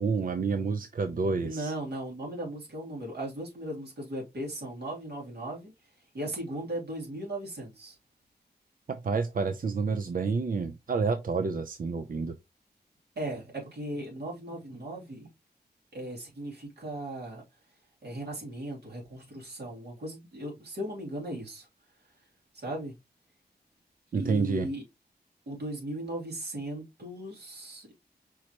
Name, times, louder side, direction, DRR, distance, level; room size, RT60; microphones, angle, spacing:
voice 1, 0.0-1.7 8.9-12.3 24.1-24.7, right 4 dB, 55° right, 0.5 m, -29 dB
voice 2, 1.4-5.7 6.1-8.0 13.2-15.3 15.9-17.4 18.0-21.7 22.5-22.9 24.1-24.8 25.5-27.9, right 1 dB, 85° right, 2.7 m, -37 dB
5.5 x 3.2 x 2.9 m
cardioid pair, 60°, 17 cm